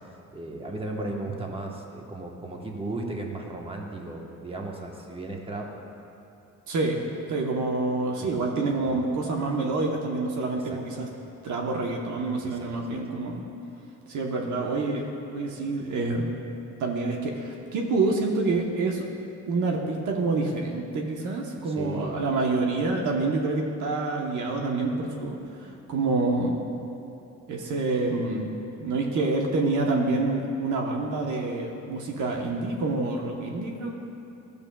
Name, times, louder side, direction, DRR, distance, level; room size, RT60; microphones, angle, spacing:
voice 1, 0.3-5.7 8.2-8.4 8.9-9.0 10.5-11.1 12.4-13.0 21.6-22.3, right 2 dB, 15° right, 0 dB, 1.1 m, -36 dB
voice 2, 6.7-7.0 7.3-11.1 11.4-13.4 14.1-16.3 16.8-19.0 19.5-26.6 27.5-33.9, right 3 dB, 70° right, 1 dB, 1.0 m, -27 dB
13.5 x 6.8 x 2.3 m, 2.7 s
cardioid pair, 80°, 31 cm